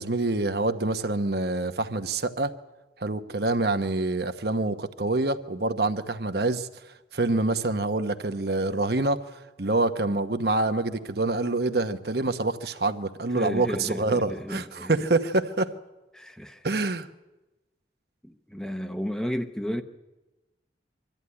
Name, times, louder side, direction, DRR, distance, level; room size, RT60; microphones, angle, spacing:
voice 1, 0.0-2.5 3.0-6.7 7.1-9.2 9.6-15.7 16.6-17.1, right 2 dB, 60° right, 1.0 m, -26 dB
voice 2, 13.4-15.0 16.1-16.7 18.2-19.8, equal, 5° left, 0.8 m, -33 dB
23.5 x 13.5 x 9.7 m
head